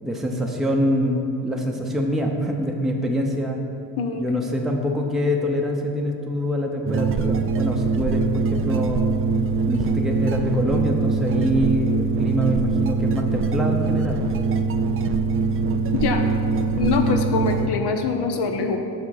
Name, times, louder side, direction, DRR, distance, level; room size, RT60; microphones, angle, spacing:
voice 1, 0.0-3.6 4.2-9.0 9.7-14.2, equal, ahead, 1 dB, 0.7 m, -24 dB
sound 1, 6.9-17.7, right 4 dB, 30° right, 0.4 m, -23 dB
voice 2, 15.9-16.3 16.8-18.8, left 5 dB, 55° left, 5 dB, 0.8 m, -24 dB
6.3 x 5.9 x 4.1 m, 2.6 s
supercardioid pair, 60°, 46 cm